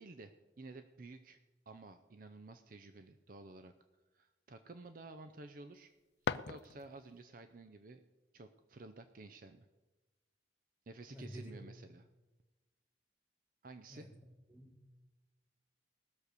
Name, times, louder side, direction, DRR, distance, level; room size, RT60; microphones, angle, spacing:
voice 1, 0.0-1.4 1.7-3.7 4.1-5.9 6.5-8.0 8.3-9.7 10.9-12.1 13.6-14.1, right 3 dB, 50° right, 9 dB, 0.5 m, -52 dB
sound 1, 5.7-7.2, left 5 dB, 60° left, 0.4 m, -41 dB
voice 2, 11.1-11.6 13.9-14.1 14.5-14.7, equal, 10° right, 1 dB, 2.0 m, -49 dB
18.0 x 6.5 x 6.7 m, 1.1 s
head